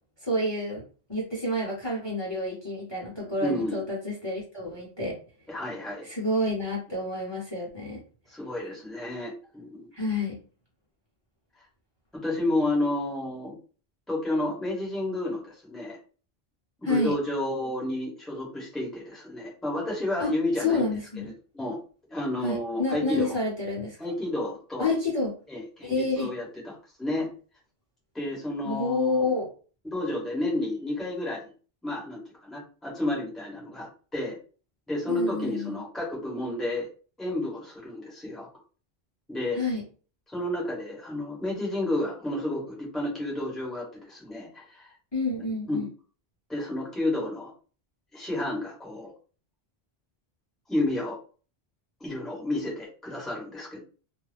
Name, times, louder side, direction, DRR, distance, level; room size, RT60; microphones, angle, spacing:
voice 1, 0.2-0.8 1.1-5.2 6.0-8.0 9.9-10.3 16.8-17.1 20.2-20.3 20.6-21.3 22.4-24.0 24.8-25.3 25.8-26.3 28.6-29.5 35.1-35.8 39.5-39.8 45.1-45.9, left 2 dB, 25° left, -4 dB, 0.9 m, -29 dB
voice 2, 3.4-3.8 5.5-6.1 8.3-9.9 12.2-13.5 14.1-16.0 16.8-20.9 21.5-21.8 22.1-23.3 24.0-24.9 25.5-27.3 28.1-29.3 29.8-31.5 31.8-34.4 34.9-36.9 37.2-38.5 39.3-39.6 40.3-44.9 45.7-45.9 46.5-47.5 48.1-49.1 50.7-51.2 52.0-53.8, left 1 dB, ahead, -4 dB, 0.9 m, -31 dB
2.4 x 2.2 x 3.3 m, 0.38 s
omnidirectional pair, 1.1 m